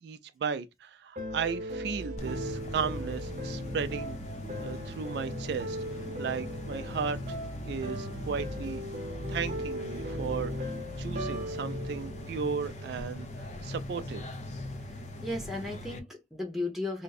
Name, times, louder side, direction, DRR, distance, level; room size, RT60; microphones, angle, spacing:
voice 1, 0.0-4.2 4.6-5.8 6.2-7.4 7.6-8.8 9.3-13.3 13.6-14.3, right 6 dB, 70° right, 0.3 m, -35 dB
sound 1, 1.2-13.3, equal, 40° right, 0.7 m, -39 dB
sound 2, 2.2-16.0, left 1 dB, 40° left, 0.5 m, -40 dB
voice 2, 14.9-17.0, left 2 dB, ahead, 0.9 m, -35 dB
2.6 x 2.2 x 4.0 m
head